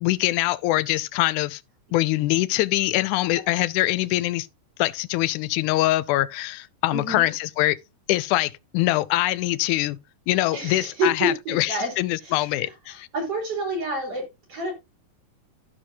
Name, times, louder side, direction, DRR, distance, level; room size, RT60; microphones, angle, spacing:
voice 1, 0.0-1.6 1.9-4.5 4.8-7.8 8.1-10.0 10.3-13.1, left 17 dB, 80° left, 1.9 m, -23 dB
voice 2, 6.9-7.3 10.5-11.9 12.2-14.7, right 1 dB, 45° right, 5.8 m, -29 dB
15.0 x 5.6 x 2.6 m
omnidirectional pair, 3.9 m